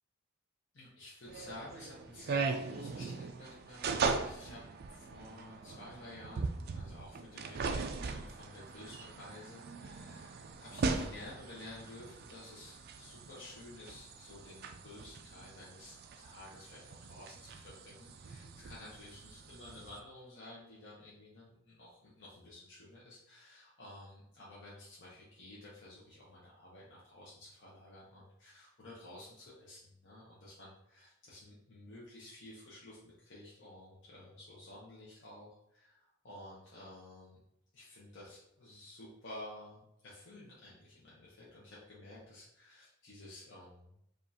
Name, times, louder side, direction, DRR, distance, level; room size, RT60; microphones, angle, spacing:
voice 1, 0.7-4.6 4.9-37.4 37.7-44.0, left 1 dB, 55° left, -7 dB, 0.8 m, -52 dB
sound 1, 1.3-20.0, right 4 dB, 45° right, 0.3 m, -40 dB
5.0 x 2.5 x 2.7 m, 0.79 s
head